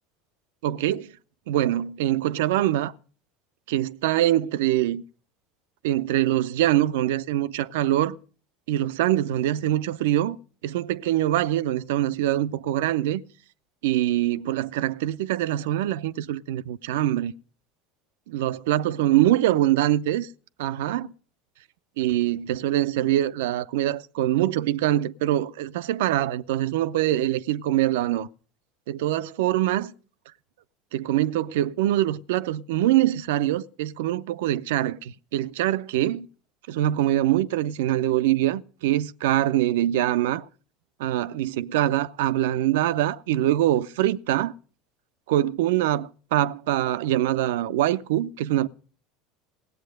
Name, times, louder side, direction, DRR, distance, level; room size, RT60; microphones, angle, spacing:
voice 1, 0.6-1.1 1.5-2.9 3.7-5.0 5.8-8.2 8.7-10.4 10.6-13.2 13.8-17.3 18.3-20.3 20.6-21.1 22.0-28.3 28.9-29.9 30.9-36.3 36.7-40.5 41.0-44.5 45.3-48.7, right 13 dB, 70° right, 0.6 m, -24 dB
17.5 x 8.2 x 6.5 m
hypercardioid pair, 80°, 0 cm